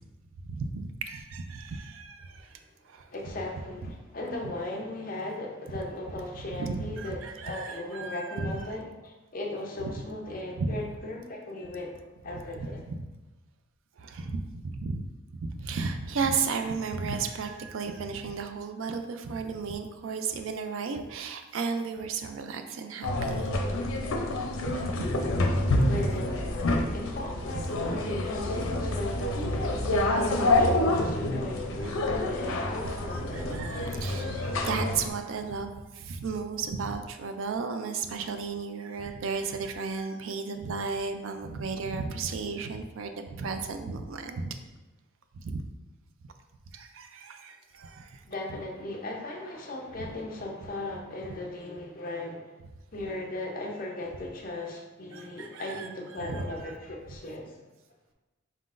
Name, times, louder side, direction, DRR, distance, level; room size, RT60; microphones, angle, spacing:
voice 1, 0.5-2.6 2.9-3.1 6.6-8.6 10.6-10.7 12.6-13.0 14.0-15.0 15.4-23.5 24.6-25.3 25.8-26.2 32.8-44.5 45.4-45.7 46.7-48.2 50.0-50.1 55.1-56.7, right 4 dB, 75° right, 7 dB, 0.4 m, -34 dB
voice 2, 3.1-12.8 25.9-33.5 48.2-52.4 52.9-57.5, left 2 dB, 45° left, 0 dB, 0.6 m, -37 dB
sound 1, 23.0-35.1, left 2 dB, 85° left, 0.5 m, -28 dB
4.2 x 3.8 x 2.5 m, 1.1 s
head